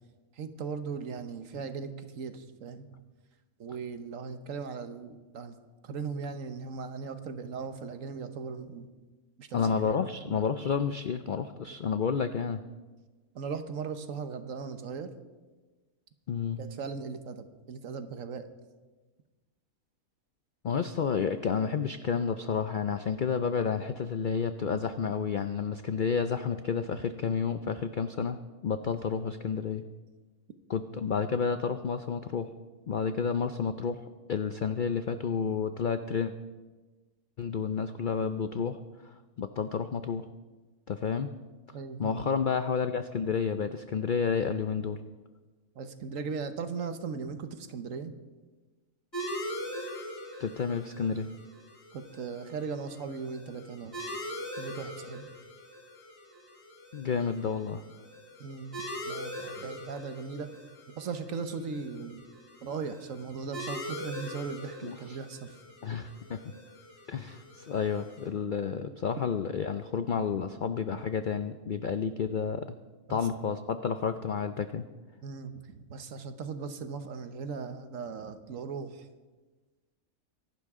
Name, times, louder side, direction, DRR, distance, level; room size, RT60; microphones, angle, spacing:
voice 1, 0.4-2.9 3.6-5.6 5.8-8.9 9.4-10.3 13.3-15.1 16.6-18.5 41.7-42.3 45.7-48.1 51.9-54.0 54.6-55.3 58.4-60.5 60.9-62.2 62.6-65.6 73.1-73.3 75.2-79.1, right 5 dB, 65° right, 9 dB, 1.3 m, -38 dB
voice 2, 9.5-12.6 16.3-16.6 20.6-29.8 30.7-32.5 32.9-34.0 34.3-36.3 37.4-38.8 39.4-40.3 40.9-41.3 42.0-45.0 50.4-51.3 56.9-57.8 64.8-65.2 65.8-66.5 67.1-72.8 73.1-74.8, left 6 dB, 65° left, 10 dB, 0.5 m, -30 dB
sound 1, 49.1-68.3, equal, 40° left, 2.9 m, -42 dB
24.0 x 11.5 x 3.7 m, 1.3 s
omnidirectional pair, 1.5 m